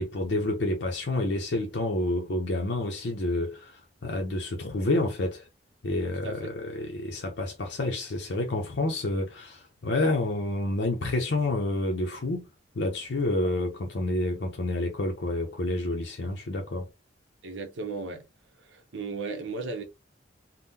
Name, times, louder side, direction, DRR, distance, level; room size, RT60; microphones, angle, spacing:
voice 1, 0.0-5.4 5.8-12.5 12.8-16.9, left 2 dB, 60° left, 0.6 m, -29 dB
voice 2, 6.2-6.6 17.4-18.2 18.6-19.8, right 3 dB, 70° right, 0.8 m, -35 dB
3.6 x 2.1 x 2.7 m
head